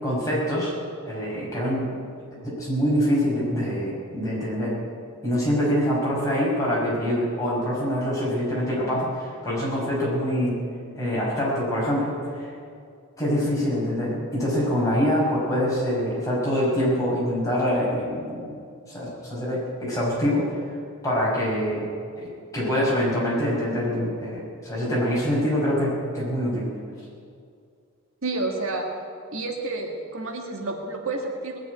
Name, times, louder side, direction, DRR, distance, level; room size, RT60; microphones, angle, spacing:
voice 1, 0.0-0.7 1.0-1.9 2.4-4.8 5.2-10.5 10.9-12.5 13.2-18.6 18.9-20.5 21.0-21.9 22.2-26.7, equal, 15° left, -6 dB, 5.3 m, -25 dB
voice 2, 28.2-28.9 29.3-31.6, right 2 dB, 70° right, 1 dB, 1.8 m, -30 dB
19.5 x 7.5 x 9.3 m, 2.3 s
head